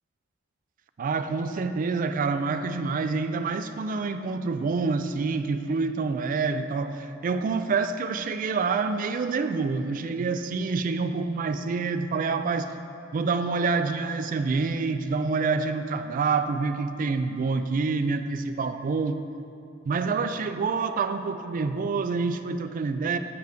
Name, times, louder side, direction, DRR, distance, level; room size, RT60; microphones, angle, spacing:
voice 1, 1.0-12.7 13.1-19.2 19.9-23.2, right 4 dB, 40° right, 9 dB, 0.3 m, -27 dB
7.8 x 3.5 x 6.5 m, 2.6 s
head